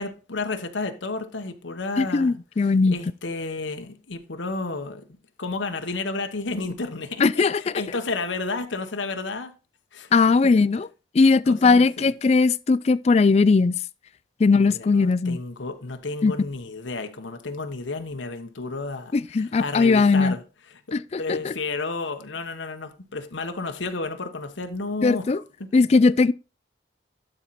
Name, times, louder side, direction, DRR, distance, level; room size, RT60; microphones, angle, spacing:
voice 1, 0.0-5.1 5.4-9.5 9.9-10.1 10.4-10.5 11.5-12.1 14.6-20.4 20.7-20.8 21.2-25.4, left 3 dB, 90° left, 1.1 m, -32 dB
voice 2, 2.0-3.0 7.2-7.6 10.1-10.9 11.1-13.7 14.4-15.4 16.2-16.3 19.1-20.3 20.9-21.5 25.0-25.4 25.7-26.3, left 4 dB, 35° left, 0.3 m, -19 dB
12.0 x 4.4 x 4.1 m
head